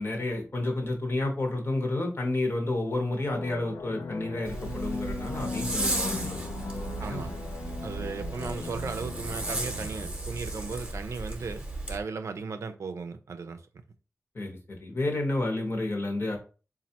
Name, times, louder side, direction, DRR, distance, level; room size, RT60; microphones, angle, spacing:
voice 1, 0.0-6.4 7.1-7.2 8.1-8.2 14.3-16.4, left 2 dB, 50° left, 1.0 m, -30 dB
sound 1, 3.2-10.5, left 4 dB, 80° left, 0.4 m, -39 dB
Zipper (clothing), 4.4-12.0, right 2 dB, 20° right, 0.8 m, -35 dB
voice 2, 7.0-7.4 7.8-11.6 11.9-13.6, right 4 dB, 75° right, 0.4 m, -36 dB
4.1 x 2.4 x 2.8 m
wide cardioid pair, 80°, 5 cm